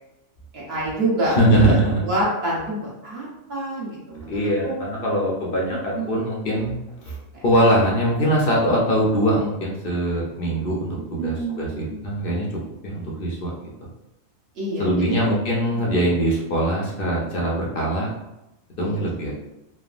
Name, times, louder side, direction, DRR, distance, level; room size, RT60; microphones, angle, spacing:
voice 1, 0.5-1.3 1.9-4.8 5.7-6.1 7.3-7.4 10.9-12.0 14.6-14.9 18.8-19.0, right 1 dB, 50° right, -6 dB, 1.2 m, -28 dB
voice 2, 1.3-2.0 4.3-6.7 7.0-7.2 7.4-13.7 14.8-18.1 18.8-19.3, right 1 dB, 55° left, -4 dB, 0.7 m, -22 dB
3.4 x 2.1 x 2.4 m, 0.95 s
omnidirectional pair, 1.4 m